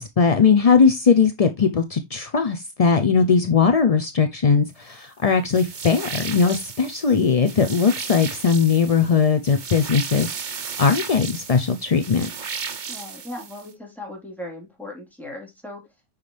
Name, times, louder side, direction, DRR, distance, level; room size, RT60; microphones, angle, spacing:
voice 1, 0.0-10.3 10.5-12.3, left 5 dB, 45° left, 0.5 m, -19 dB
sound 1, 5.5-13.7, right 6 dB, 40° right, 0.8 m, -35 dB
voice 2, 12.9-15.8, left 1 dB, ahead, 4.0 m, -37 dB
9.5 x 5.7 x 3.3 m
omnidirectional pair, 1.6 m